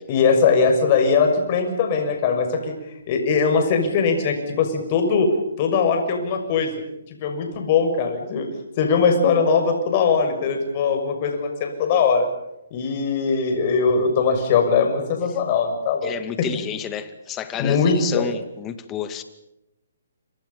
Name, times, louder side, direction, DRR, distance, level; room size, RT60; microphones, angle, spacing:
voice 1, 0.1-5.3 5.6-6.7 7.1-8.5 8.8-12.3 12.7-16.5 17.6-18.3, left 5 dB, 35° left, 5 dB, 6.3 m, -20 dB
voice 2, 16.0-19.2, left 9 dB, 20° left, 10 dB, 2.2 m, -30 dB
29.5 x 25.5 x 5.6 m, 0.88 s
hypercardioid pair, 145°, 0 cm